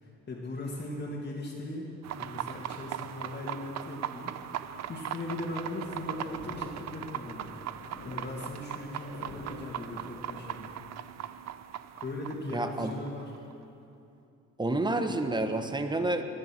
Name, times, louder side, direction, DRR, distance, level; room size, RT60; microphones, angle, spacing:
voice 1, 0.0-1.9 2.2-4.3 4.9-7.5 8.0-10.7 12.0-13.3, left 2 dB, 35° left, -5 dB, 2.3 m, -38 dB
sound 1, 2.0-13.5, right 11 dB, 60° right, 0.6 m, -39 dB
sound 2, 5.7-10.7, left 2 dB, 75° left, 2.9 m, -48 dB
voice 2, 12.5-12.9 14.6-16.2, right 2 dB, 15° right, 7 dB, 1.1 m, -29 dB
17.0 x 11.5 x 6.1 m, 2.7 s
cardioid pair, 90°, 30 cm